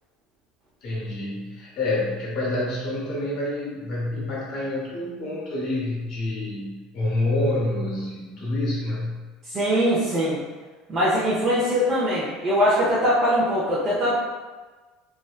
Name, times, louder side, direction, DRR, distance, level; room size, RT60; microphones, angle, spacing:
voice 1, 0.8-9.2, left 2 dB, 60° left, -6 dB, 0.9 m, -27 dB
voice 2, 9.5-10.4 10.9-14.2, equal, 40° right, -8 dB, 0.6 m, -22 dB
2.5 x 2.1 x 2.3 m, 1.3 s
hypercardioid pair, 80°, 0 cm